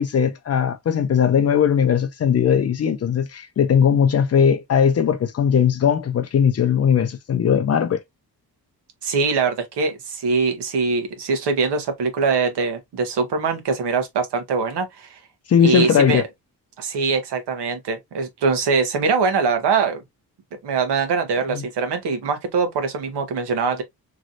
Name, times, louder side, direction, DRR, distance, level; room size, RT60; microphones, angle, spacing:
voice 1, 0.0-8.0 15.5-16.2 21.5-21.6, left 8 dB, 40° left, 0.4 m, -19 dB
voice 2, 9.0-15.2 15.6-16.3 16.8-20.0 20.6-23.8, right 5 dB, 85° right, 1.1 m, -22 dB
3.1 x 2.6 x 2.5 m
wide cardioid pair, 160°, 40 cm